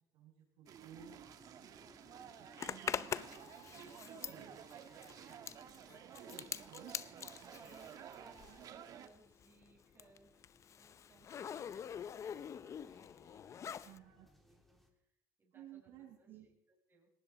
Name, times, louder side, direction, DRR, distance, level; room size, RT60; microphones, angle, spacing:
voice 1, 0.1-1.2 2.4-4.5 6.2-7.0 13.8-14.3 15.5-16.5, right 7 dB, 75° right, -2 dB, 7.0 m, -56 dB
sound 1, 0.7-14.9, equal, ahead, 3.5 m, -69 dB
sound 2, 0.7-9.1, right 9 dB, 55° right, 1.5 m, -53 dB
Zipper (clothing), 2.6-8.8 9.0-14.0, left 8 dB, 40° left, 0.7 m, -45 dB
voice 2, 4.0-6.4 7.0-7.1 7.4-10.5 10.8-14.0 14.3-15.0 15.4-17.1, right 3 dB, 30° right, -1 dB, 5.5 m, -66 dB
18.5 x 18.5 x 4.2 m, 0.77 s
supercardioid pair, 100°, 8 cm